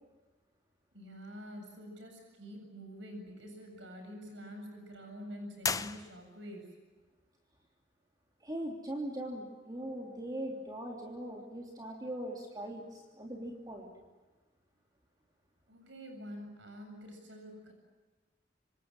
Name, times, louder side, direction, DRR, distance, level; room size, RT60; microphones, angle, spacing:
voice 1, 0.9-6.7 15.7-17.7, equal, 75° right, 4 dB, 7.7 m, -47 dB
sound 1, 5.6-6.6, left 5 dB, 20° left, 0.8 m, -36 dB
voice 2, 8.4-13.9, right 1 dB, 20° right, 0 dB, 3.1 m, -40 dB
27.5 x 25.5 x 7.5 m, 1.3 s
head